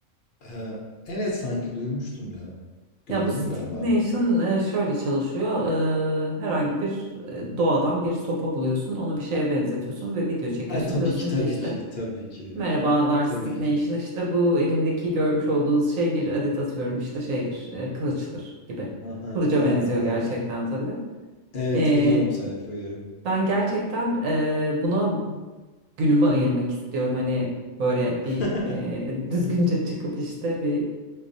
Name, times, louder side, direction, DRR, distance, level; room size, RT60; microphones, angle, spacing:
voice 1, 0.4-2.5 3.1-3.9 10.7-12.6 13.3-13.7 19.0-20.3 21.5-23.1 28.4-28.8, left 1 dB, 50° left, -3 dB, 0.7 m, -30 dB
voice 2, 3.1-3.4 3.7-11.7 12.5-18.9 19.3-21.0 21.7-22.3 23.2-25.3 26.0-27.5 27.8-30.9, equal, 85° right, -3 dB, 1.1 m, -25 dB
4.4 x 2.3 x 2.6 m, 1.2 s
omnidirectional pair, 1.3 m